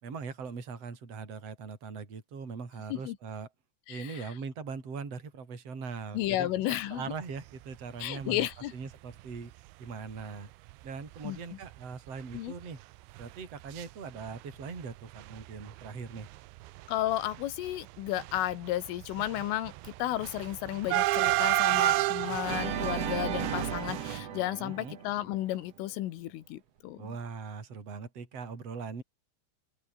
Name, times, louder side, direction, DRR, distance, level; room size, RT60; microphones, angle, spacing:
voice 1, 0.0-3.5 3.9-8.5 8.7-9.5 9.8-10.5 10.8-12.8 13.2-16.3 24.6-25.0 27.0-29.0, right 5 dB, 30° right, 5.4 m, -41 dB
voice 2, 3.9-4.3 6.1-7.0 8.0-8.7 11.2-11.4 12.3-12.5 16.9-27.2, left 14 dB, 90° left, 4.0 m, -33 dB
sound 1, 8.2-8.4 8.9-9.0 9.2-9.4 10.2-10.3 10.7-10.9 11.1-11.3 11.6-13.8 14.1-14.8 15.1-24.2, right 19 dB, 75° right, 2.9 m, -32 dB
Organ, 22.4-25.6, right 8 dB, 55° right, 1.9 m, -35 dB
open air
omnidirectional pair, 5.7 m